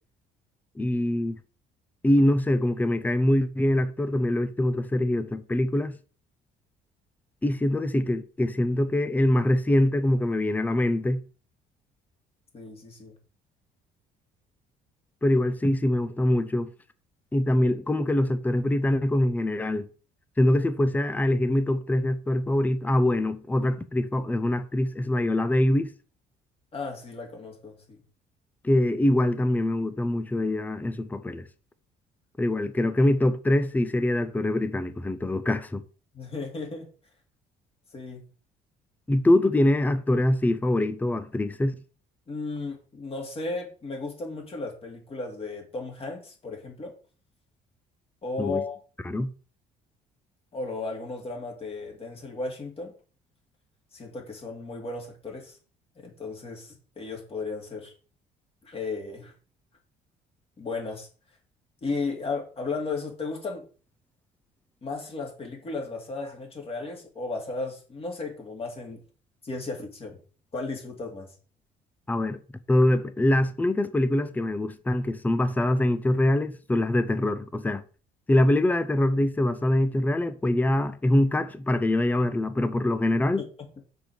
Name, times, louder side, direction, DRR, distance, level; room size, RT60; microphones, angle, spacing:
voice 1, 0.8-1.4 2.0-6.0 7.4-11.2 15.2-16.7 17.3-19.9 20.4-25.9 28.6-31.4 32.4-35.8 39.1-41.7 48.4-48.6 49.0-49.3 72.1-72.4 72.7-77.8 78.3-83.4, left 1 dB, 10° left, 0.7 m, -24 dB
voice 2, 12.5-13.1 26.7-28.0 36.1-36.9 37.9-38.2 42.3-46.9 48.2-48.8 50.5-52.9 53.9-55.6 56.0-57.9 58.6-59.3 60.6-61.1 61.8-63.6 64.8-69.0 69.4-70.2 70.5-71.3, left 3 dB, 35° left, 2.8 m, -35 dB
6.1 x 5.2 x 6.3 m
cardioid pair, 110°, 17 cm